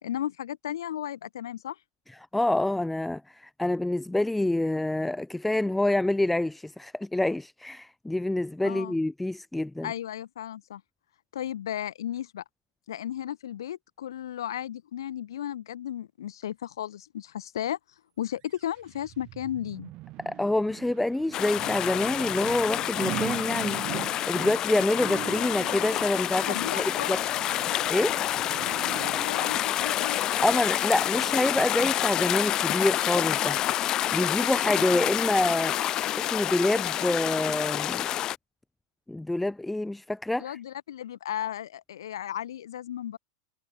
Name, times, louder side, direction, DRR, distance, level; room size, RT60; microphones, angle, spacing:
voice 1, 0.0-1.8 8.6-9.0 9.8-10.8 11.3-12.4 12.9-17.8 18.2-19.9 26.5-27.2 28.9-30.2 40.4-43.2, left 11 dB, 90° left, 2.1 m, -34 dB
voice 2, 2.3-9.9 20.2-27.2 27.9-28.2 30.4-35.8 36.2-38.1 39.1-40.6, left 1 dB, 5° left, 0.7 m, -27 dB
sound 1, 18.5-32.4 32.8-32.9, right 19 dB, 35° right, 2.6 m, -42 dB
sound 2, 21.3-38.4, left 12 dB, 30° left, 1.3 m, -28 dB
supercardioid pair, 150°, 2 cm